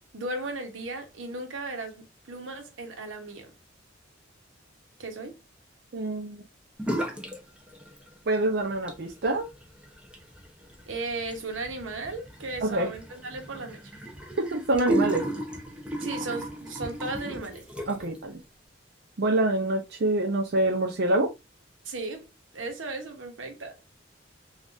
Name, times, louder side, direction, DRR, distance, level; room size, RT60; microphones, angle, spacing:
voice 1, 0.1-3.5 5.0-5.4 10.9-13.8 16.0-17.6 21.8-22.3 22.5-23.8, right 2 dB, 85° right, 0.9 m, -36 dB
voice 2, 5.9-6.4 8.3-9.5 12.6-12.9 14.4-15.3 17.9-18.4 19.2-21.3, right 2 dB, 55° right, 0.5 m, -26 dB
sound 1, 6.8-7.4 7.7-8.3 8.7-18.2, right 1 dB, 5° right, 0.6 m, -34 dB
3.8 x 2.4 x 2.4 m
head